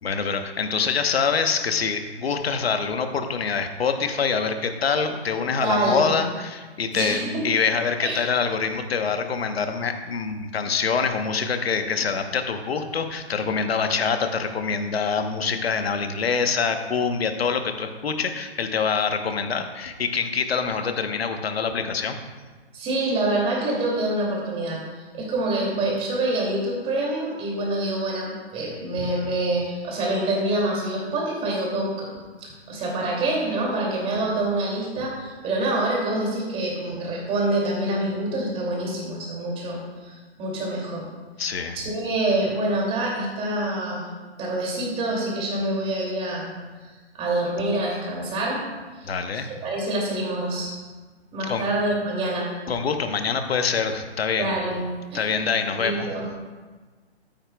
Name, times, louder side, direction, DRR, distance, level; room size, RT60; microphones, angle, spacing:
voice 1, 0.0-22.2 41.4-41.8 49.0-49.5 51.5-51.6 52.7-54.7 55.1-56.1, left 5 dB, 65° left, 7 dB, 1.2 m, -25 dB
voice 2, 5.6-6.1 6.9-7.4 8.0-8.2 22.7-24.8 25.1-41.1 41.7-44.1 44.4-46.5 47.1-48.6 49.0-50.7 51.3-52.5 54.3-54.8 55.1-55.3 55.8-56.2, right 2 dB, 15° right, -3 dB, 2.7 m, -26 dB
13.5 x 9.2 x 2.3 m, 1.3 s
figure-of-eight pair, 135°, 33 cm